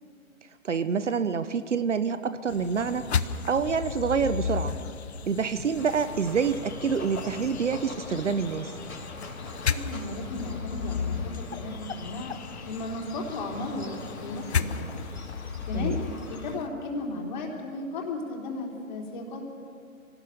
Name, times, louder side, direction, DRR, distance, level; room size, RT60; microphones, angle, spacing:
voice 1, 0.6-3.1 3.5-4.8 5.3-8.7 15.7-16.0, right 6 dB, 55° right, 12 dB, 1.0 m, -27 dB
sound 1, 2.5-16.7, left 6 dB, 50° left, 0.9 m, -34 dB
sound 2, 5.8-16.6, left 2 dB, 80° left, 4.2 m, -43 dB
voice 2, 9.7-12.3 12.7-15.1 15.6-16.0 16.2-19.4, left 2 dB, 35° left, 0 dB, 3.5 m, -35 dB
24.5 x 18.0 x 6.8 m, 2.3 s
figure-of-eight pair, 145°, 42 cm